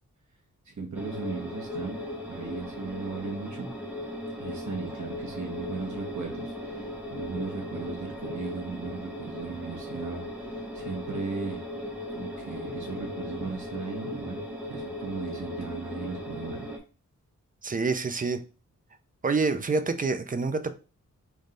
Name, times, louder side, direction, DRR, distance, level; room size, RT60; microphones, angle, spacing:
voice 1, 0.7-3.8 4.4-10.2 10.7-11.6 12.1-16.8, right 4 dB, 65° right, 1.2 m, -37 dB
sound 1, 0.9-16.8, left 1 dB, 5° right, 0.8 m, -37 dB
voice 2, 17.6-18.4 19.2-20.7, right 4 dB, 25° right, 0.5 m, -27 dB
3.5 x 3.1 x 3.8 m
wide cardioid pair, 135°, 32 cm